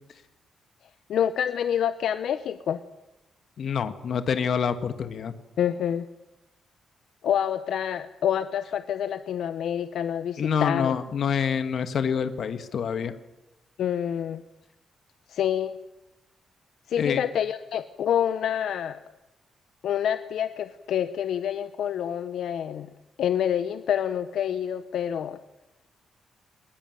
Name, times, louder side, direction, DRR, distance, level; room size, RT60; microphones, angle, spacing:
voice 1, 1.1-2.8 5.6-6.1 7.2-10.9 13.8-14.4 15.3-15.8 16.9-19.0 19.8-22.9 23.2-25.4, left 9 dB, 80° left, 12 dB, 0.9 m, -27 dB
voice 2, 3.6-5.3 10.4-13.1 17.0-17.2, left 7 dB, 55° left, 11 dB, 1.7 m, -27 dB
21.0 x 20.5 x 9.2 m, 0.93 s
wide cardioid pair, 145°, 0 cm